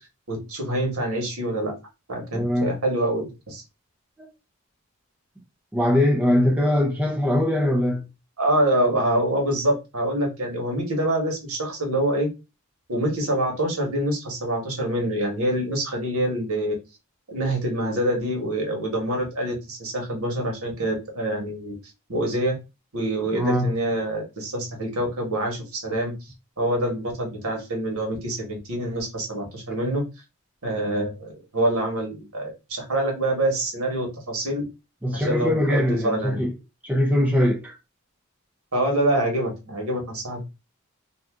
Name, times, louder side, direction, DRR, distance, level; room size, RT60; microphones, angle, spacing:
voice 1, 0.3-1.7 2.1-3.6 8.4-12.3 12.9-16.7 17.3-21.7 22.1-22.5 22.9-26.1 26.6-30.0 30.6-34.6 35.1-36.4 38.7-40.5, right 1 dB, 75° right, 1.3 m, -26 dB
voice 2, 2.3-2.8 5.7-8.1 23.3-23.8 35.0-36.5 36.8-37.8, left 1 dB, 5° right, 0.4 m, -22 dB
2.7 x 2.3 x 3.5 m
head